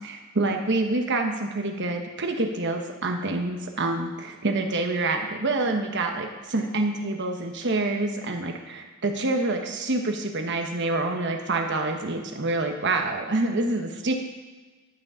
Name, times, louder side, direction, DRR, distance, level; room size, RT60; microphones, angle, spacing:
voice 1, 0.0-14.1, right 2 dB, 55° right, 4 dB, 1.1 m, -27 dB
11.0 x 6.3 x 5.6 m, 1.3 s
head